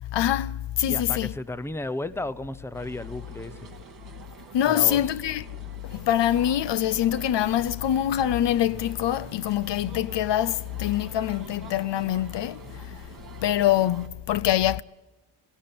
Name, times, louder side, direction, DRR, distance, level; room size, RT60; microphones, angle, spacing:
voice 1, 0.0-1.3 4.5-5.4 5.8-13.0 13.4-14.8, left 11 dB, 70° left, 0.7 m, -24 dB
voice 2, 0.9-3.7 4.7-5.1, left 2 dB, 5° left, 0.8 m, -34 dB
sound 1, 2.7-14.1, right 5 dB, 50° right, 2.5 m, -46 dB
18.5 x 16.5 x 8.7 m
cardioid pair, 85°, 44 cm